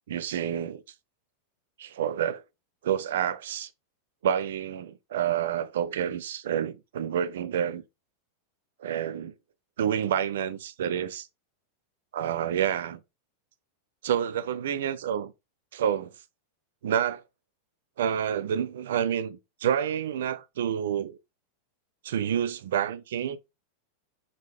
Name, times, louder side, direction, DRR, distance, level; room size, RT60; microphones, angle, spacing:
voice 1, 0.1-0.8 1.8-2.4 2.8-3.7 4.2-7.8 8.8-9.3 9.8-11.3 12.1-13.0 14.0-15.3 15.7-16.1 16.8-17.2 18.0-21.2 22.0-23.4, right 9 dB, 60° right, 0.3 m, -28 dB
3.7 x 3.6 x 3.3 m
figure-of-eight pair, 90°, 0 cm